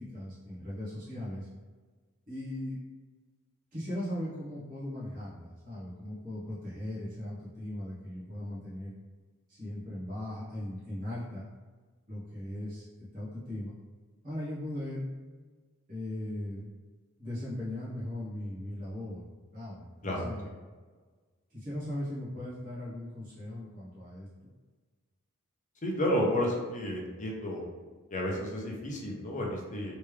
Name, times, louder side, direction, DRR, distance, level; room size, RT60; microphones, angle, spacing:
voice 1, 0.0-1.5 2.3-2.7 3.7-8.9 9.5-11.4 12.1-12.9 13.1-13.7 14.2-15.0 15.9-16.7 17.2-19.2 19.5-20.5 21.5-24.3, left 1 dB, 40° right, -10 dB, 1.2 m, -38 dB
voice 2, 25.8-27.6 28.1-29.9, equal, 35° left, -1 dB, 0.7 m, -31 dB
3.3 x 3.3 x 3.2 m, 1.4 s
head